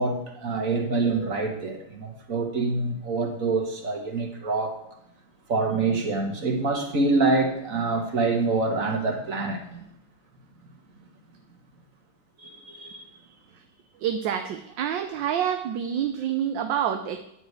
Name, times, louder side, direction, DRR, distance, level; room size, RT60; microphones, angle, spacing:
voice 1, 0.0-4.7 5.5-9.8 12.4-13.0, right 3 dB, 45° right, 3 dB, 2.1 m, -26 dB
voice 2, 14.0-17.2, right 9 dB, 80° right, 7 dB, 1.5 m, -27 dB
10.0 x 6.4 x 8.2 m, 0.79 s
omnidirectional pair, 2.0 m